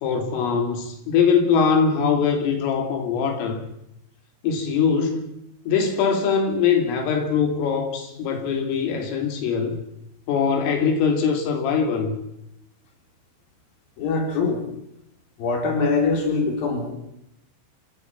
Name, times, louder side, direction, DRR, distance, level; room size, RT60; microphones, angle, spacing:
voice 1, 0.0-3.6 4.4-5.3 5.7-9.8 10.3-12.2, left 6 dB, 85° left, 4 dB, 5.4 m, -22 dB
voice 2, 14.0-14.6 15.4-16.9, left 4 dB, 50° left, 3 dB, 5.3 m, -23 dB
29.5 x 17.5 x 5.9 m, 0.79 s
omnidirectional pair, 5.7 m